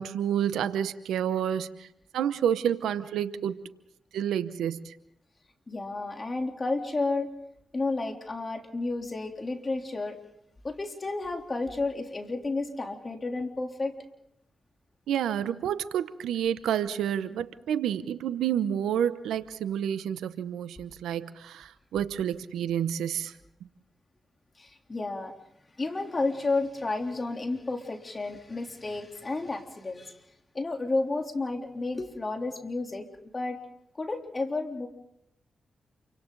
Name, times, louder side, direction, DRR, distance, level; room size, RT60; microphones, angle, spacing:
voice 1, 0.0-1.9 2.1-3.6 4.1-5.0 15.1-23.3, right 9 dB, 90° right, 0.8 m, -29 dB
voice 2, 5.7-7.3 7.7-10.2 10.6-13.9 24.6-25.3 25.8-30.2 30.5-33.6 34.0-34.9, left 3 dB, 40° left, 3.4 m, -31 dB
28.5 x 25.0 x 4.0 m
supercardioid pair, 45°, 0 cm